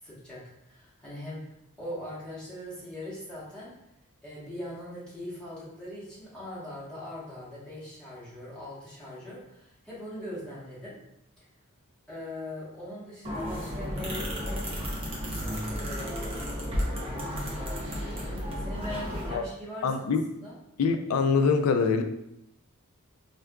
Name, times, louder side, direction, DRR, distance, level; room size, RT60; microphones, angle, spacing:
voice 1, 0.0-3.7 4.2-11.0 11.4-11.5 12.1-14.7 15.3-19.9 20.4-20.5, left 1 dB, 5° left, -10 dB, 1.2 m, -41 dB
sound 1, 13.2-19.3, equal, 25° right, 0.7 m, -33 dB
voice 2, 19.8-20.2 20.8-22.0, left 5 dB, 80° left, 7 dB, 0.4 m, -24 dB
4.4 x 2.4 x 2.3 m, 0.82 s
head